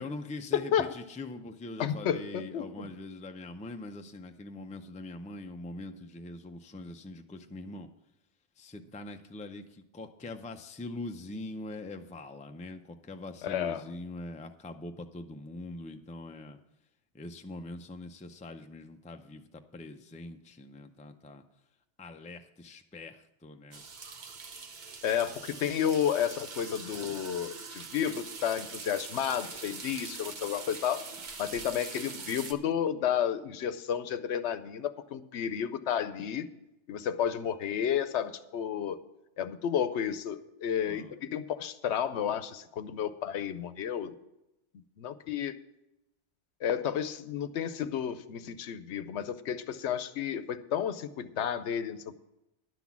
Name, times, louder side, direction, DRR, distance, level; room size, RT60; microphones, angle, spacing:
voice 1, 0.0-7.9 8.6-16.6 17.1-21.4 22.0-23.8 40.9-41.1, left 2 dB, 10° left, 6 dB, 0.3 m, -43 dB
voice 2, 0.5-0.9 1.8-2.9 13.4-13.8 25.0-31.1 31.4-36.5 36.9-39.0 39.4-44.1 45.0-45.5 46.6-52.3, left 9 dB, 80° left, 13 dB, 0.9 m, -31 dB
sound 1, 23.7-32.5, right 5 dB, 45° right, 0.9 m, -43 dB
11.0 x 6.1 x 7.2 m, 0.91 s
omnidirectional pair, 1.2 m